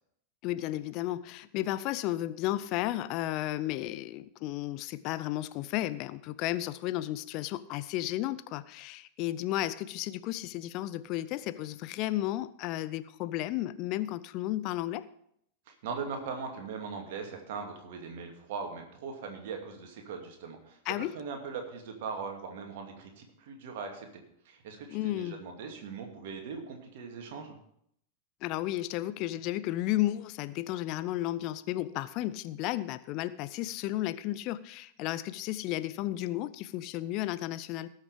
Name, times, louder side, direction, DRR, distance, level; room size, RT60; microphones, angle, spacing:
voice 1, 0.4-15.0 20.9-21.2 24.9-25.4 28.4-37.9, left 15 dB, 40° left, 16 dB, 0.5 m, -33 dB
voice 2, 15.7-20.8 21.1-24.1 24.5-27.6, right 5 dB, 50° right, 3 dB, 2.5 m, -40 dB
18.5 x 6.5 x 5.0 m, 0.70 s
figure-of-eight pair, 90°, 0 cm